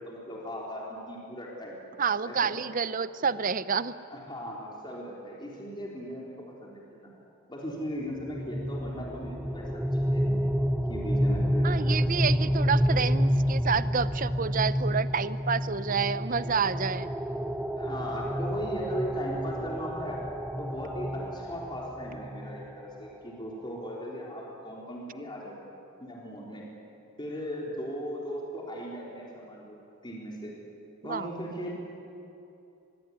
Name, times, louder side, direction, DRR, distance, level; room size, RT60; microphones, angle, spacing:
voice 1, 0.0-1.8 2.2-2.6 4.1-7.1 7.5-10.4 10.9-12.2 17.8-20.2 20.6-25.6 26.0-26.6 27.2-29.8 30.0-30.5 31.0-31.7, equal, 20° left, -3 dB, 3.9 m, -38 dB
voice 2, 2.0-4.0 11.6-17.1 31.0-31.3, right 5 dB, 40° right, 15 dB, 0.7 m, -29 dB
sound 1, 8.2-23.1, equal, 5° right, 0.7 m, -29 dB
24.0 x 22.0 x 9.7 m, 2.8 s
head